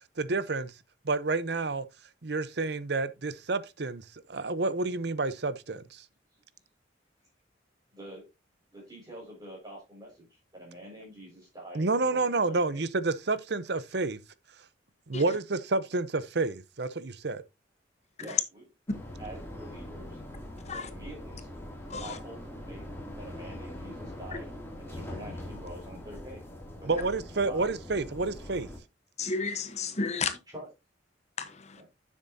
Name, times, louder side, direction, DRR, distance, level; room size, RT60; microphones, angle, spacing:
voice 1, 0.2-0.7 1.0-1.8 2.2-6.0 11.7-14.2 15.1-17.4 26.9-28.7, right 3 dB, 60° right, 0.8 m, -29 dB
voice 2, 7.9-8.2 8.7-12.8 18.2-18.7 19.2-20.2 20.7-21.5 22.0-22.8 23.2-24.5 24.8-26.4 26.8-27.1 27.4-27.7 30.5-30.7 31.8-31.9, right 1 dB, 20° right, 5.1 m, -46 dB
sound 1, 18.9-28.8, left 1 dB, 15° left, 2.6 m, -42 dB
voice 3, 29.2-30.4 31.4-31.8, left 4 dB, 35° left, 1.0 m, -33 dB
10.0 x 7.4 x 2.8 m
head